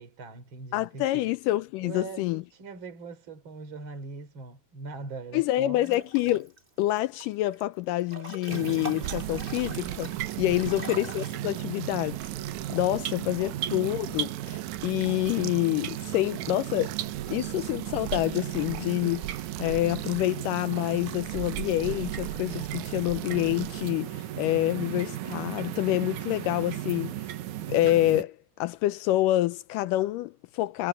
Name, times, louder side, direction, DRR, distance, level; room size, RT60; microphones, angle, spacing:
voice 1, 0.0-1.3 1.8-6.0 10.5-11.1 13.2-13.5, right 4 dB, 35° right, 4.0 m, -42 dB
voice 2, 0.7-2.4 5.3-6.5 6.8-10.1 10.4-12.2 12.7-17.0 17.3-27.1 27.7-30.9, left 16 dB, 80° left, 2.0 m, -27 dB
Breathing / Bathtub (filling or washing) / Splash splatter, 5.8-6.6 7.0-7.6 8.0-11.3, right 1 dB, 15° right, 2.8 m, -42 dB
sound 1, 8.5-28.2, right 13 dB, 65° right, 2.3 m, -35 dB
sound 2, 9.0-23.9, right 15 dB, 80° right, 2.4 m, -41 dB
omnidirectional pair, 4.2 m